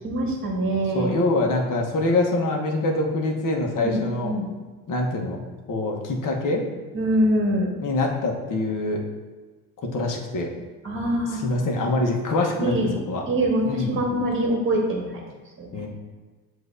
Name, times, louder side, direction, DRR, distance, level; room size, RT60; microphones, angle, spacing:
voice 1, 0.0-1.2 3.8-4.4 6.9-7.7 10.8-11.4 12.6-12.9 13.3-15.2 15.6-15.9, right 1 dB, 25° right, -1 dB, 1.3 m, -24 dB
voice 2, 0.9-4.3 4.9-6.6 7.8-9.0 9.9-10.5 11.3-12.7 13.1-13.2 13.6-14.0 15.7-15.9, left 2 dB, 40° left, 0 dB, 1.0 m, -24 dB
7.7 x 2.7 x 2.6 m, 1.3 s
hypercardioid pair, 70°, 49 cm